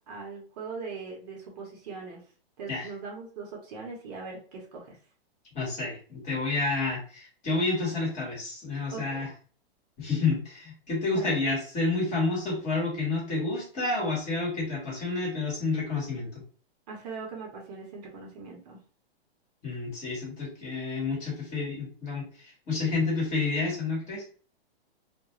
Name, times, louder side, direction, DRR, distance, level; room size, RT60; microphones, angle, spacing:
voice 1, 0.1-2.2 2.6-5.0 8.9-9.3 11.1-11.3 16.9-18.8, right 4 dB, 40° right, -1 dB, 0.8 m, -40 dB
voice 2, 5.5-9.3 10.0-16.4 19.6-24.2, left 3 dB, 20° left, -4 dB, 1.2 m, -29 dB
2.3 x 2.1 x 3.0 m, 0.41 s
hypercardioid pair, 145°, 31 cm